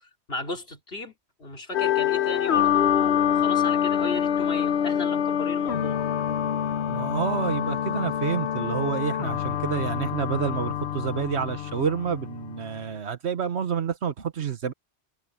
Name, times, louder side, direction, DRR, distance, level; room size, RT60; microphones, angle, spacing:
voice 1, 0.3-1.1 1.4-6.0, left 2 dB, 65° left, 3.3 m, -35 dB
sound 1, 1.7-12.8, left 9 dB, 80° left, 1.1 m, -26 dB
voice 2, 6.9-14.7, right 7 dB, 80° right, 1.4 m, -29 dB
omnidirectional pair, 1.1 m